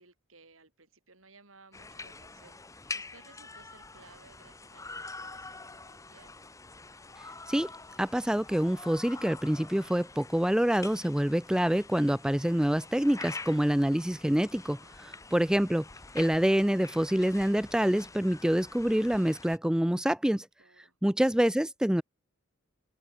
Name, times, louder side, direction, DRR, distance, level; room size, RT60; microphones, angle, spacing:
voice 1, 0.0-6.4 14.8-15.2 20.6-21.0, right 3 dB, 80° right, 5.8 m, -59 dB
sound 1, 1.7-19.6, left 3 dB, 15° left, 0.9 m, -46 dB
voice 2, 8.0-15.9 16.1-20.5 21.0-22.0, equal, 5° right, 0.4 m, -26 dB
open air
head